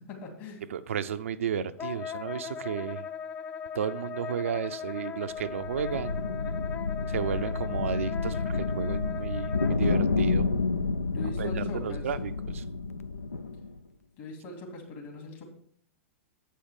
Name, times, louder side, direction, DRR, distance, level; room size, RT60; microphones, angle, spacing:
voice 1, 0.1-0.6 11.0-12.0 14.2-15.5, left 2 dB, 50° left, 1 dB, 2.7 m, -41 dB
voice 2, 0.7-3.1 3.7-6.2 7.1-10.5 11.4-12.6, right 8 dB, 70° right, 10 dB, 0.5 m, -33 dB
Wind instrument woodwind instrument, 1.8-10.0, left 6 dB, 20° left, 0.4 m, -38 dB
sound 1, 5.3-13.8, left 4 dB, 90° left, 0.4 m, -30 dB
8.4 x 5.5 x 5.1 m, 0.63 s
figure-of-eight pair, 100°, 7 cm